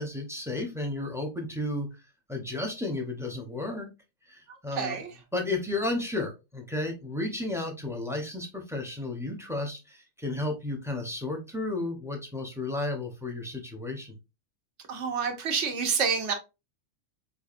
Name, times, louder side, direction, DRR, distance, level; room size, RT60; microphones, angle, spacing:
voice 1, 0.0-1.9 2.3-3.9 4.3-5.0 5.3-14.2, left 2 dB, 5° right, 2 dB, 0.5 m, -33 dB
voice 2, 4.7-5.1 14.9-16.3, right 6 dB, 65° right, 5 dB, 1.0 m, -28 dB
4.7 x 2.5 x 2.5 m, 0.26 s
omnidirectional pair, 1.4 m